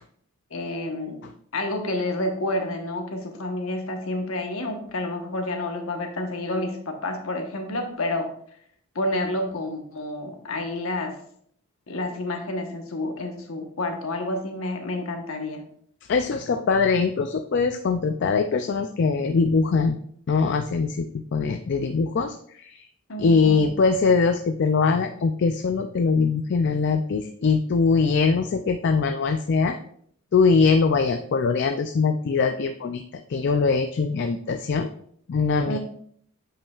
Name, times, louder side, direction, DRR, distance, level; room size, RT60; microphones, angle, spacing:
voice 1, 0.5-1.2 1.5-8.3 8.9-11.1 11.9-15.6 23.1-23.7 35.7-35.8, left 1 dB, 65° left, 4 dB, 1.1 m, -29 dB
voice 2, 16.1-20.0 20.3-22.4 22.6-22.8 23.2-29.8 30.3-33.0 33.3-34.9 35.3-35.8, left 4 dB, 50° left, 7 dB, 0.3 m, -22 dB
8.6 x 5.3 x 2.4 m, 0.64 s
head